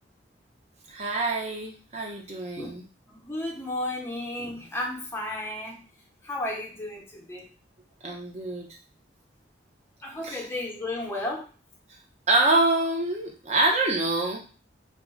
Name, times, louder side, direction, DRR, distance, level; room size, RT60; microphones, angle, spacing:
voice 1, 0.9-2.8 8.0-8.7 10.2-10.4 12.3-14.4, right 2 dB, 35° right, 0 dB, 0.6 m, -25 dB
voice 2, 3.1-5.9 6.2-7.4 10.0-11.5, left 1 dB, 15° left, -2 dB, 0.6 m, -33 dB
2.3 x 2.1 x 3.7 m, 0.37 s
head